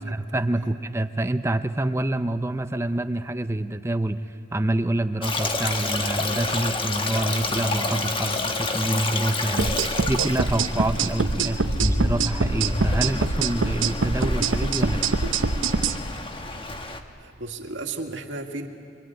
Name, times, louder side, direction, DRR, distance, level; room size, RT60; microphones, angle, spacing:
voice 1, 0.0-4.2 4.5-15.0, right 1 dB, 15° right, 10 dB, 0.5 m, -27 dB
Stream, 5.2-17.0, left 2 dB, 25° left, 1.3 m, -29 dB
sound 1, 9.6-16.0, right 4 dB, 90° right, 0.9 m, -24 dB
voice 2, 17.2-18.7, right 3 dB, 70° right, 3 dB, 2.0 m, -34 dB
24.0 x 24.0 x 9.0 m, 2.5 s
head